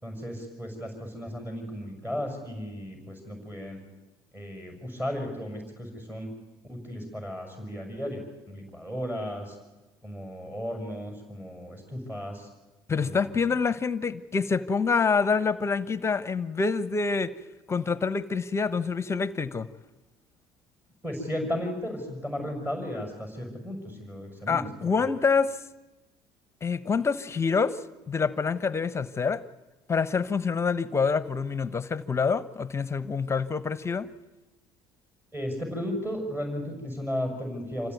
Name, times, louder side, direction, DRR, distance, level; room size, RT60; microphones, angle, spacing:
voice 1, 0.0-3.8 4.3-6.3 6.7-8.2 8.5-9.5 10.0-12.5 13.0-13.6 21.0-25.1 35.3-37.9, equal, 15° right, 4 dB, 6.4 m, -35 dB
voice 2, 12.9-17.3 17.7-19.7 24.5-25.5 26.6-27.8 28.1-29.4 29.9-34.1, left 5 dB, 25° left, 16 dB, 1.0 m, -26 dB
26.5 x 15.5 x 9.4 m, 1.1 s
supercardioid pair, 90°, 11 cm